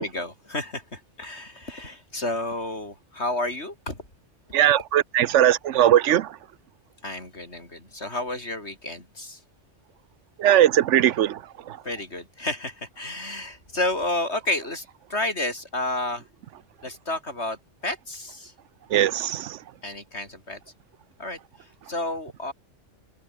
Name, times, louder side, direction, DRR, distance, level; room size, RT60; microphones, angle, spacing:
voice 1, 0.0-4.0 7.0-9.4 11.8-16.2 16.8-18.5 19.8-20.6 21.2-22.5, left 2 dB, 65° left, 6.0 m, -31 dB
voice 2, 4.5-6.3 10.4-11.4 18.9-19.6, right 11 dB, 80° right, 1.0 m, -19 dB
omnidirectional pair, 1.2 m